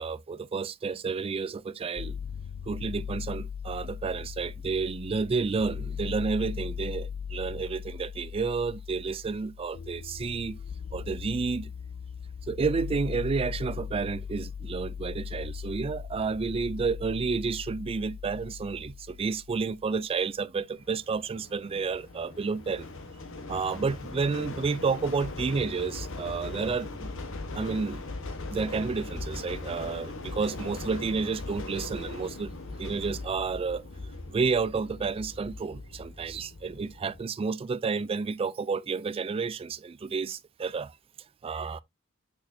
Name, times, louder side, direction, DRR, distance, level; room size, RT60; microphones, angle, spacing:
voice 1, 0.0-2.2 2.7-10.6 10.9-11.7 12.5-22.9 23.5-27.1 27.5-28.0 28.5-33.8 34.3-40.9 41.4-41.8, right 4 dB, 25° right, 0.3 m, -30 dB
sound 1, 2.0-19.9, left 7 dB, 50° left, 0.3 m, -39 dB
sound 2, 20.7-37.2, left 3 dB, 65° left, 1.2 m, -40 dB
6.4 x 6.1 x 2.7 m
head